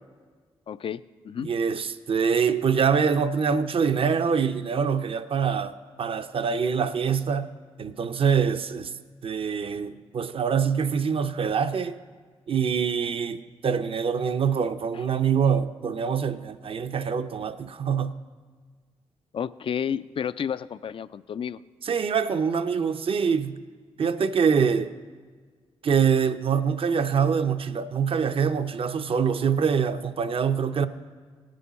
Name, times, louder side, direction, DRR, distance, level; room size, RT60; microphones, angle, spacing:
voice 1, 0.7-1.5 14.9-15.0 19.3-21.6, left 8 dB, 50° left, 0.4 m, -31 dB
voice 2, 1.4-7.5 7.8-8.9 9.2-12.0 12.5-18.1 21.8-23.5 24.0-24.9 25.8-30.9, right 6 dB, 50° right, 0.6 m, -24 dB
18.0 x 6.4 x 4.2 m
supercardioid pair, 45°, 12 cm